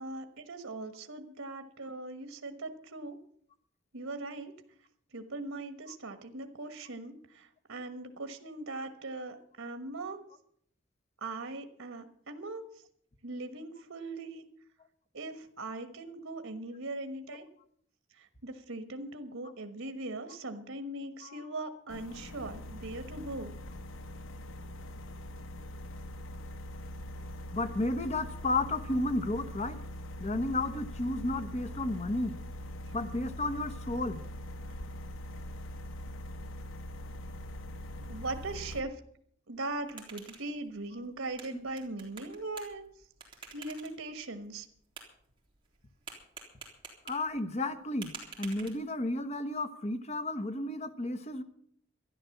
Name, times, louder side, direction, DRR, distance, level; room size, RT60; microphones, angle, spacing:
voice 1, 0.0-3.2 3.9-4.5 5.1-10.2 11.2-12.6 13.2-14.4 15.1-17.5 18.1-23.5 32.8-32.9 38.0-39.0 39.5-42.8 43.5-44.7, right 2 dB, 85° right, 7 dB, 1.3 m, -40 dB
sound 1, 21.9-38.8, left 1 dB, 70° left, 1.0 m, -42 dB
voice 2, 27.5-29.8 30.2-32.4 32.9-34.2 41.5-41.6 47.0-48.1 48.4-51.4, left 2 dB, 35° left, 10 dB, 1.2 m, -32 dB
sound 2, 39.5-49.2, right 5 dB, 25° right, 3.5 m, -51 dB
13.0 x 11.0 x 7.2 m, 0.65 s
head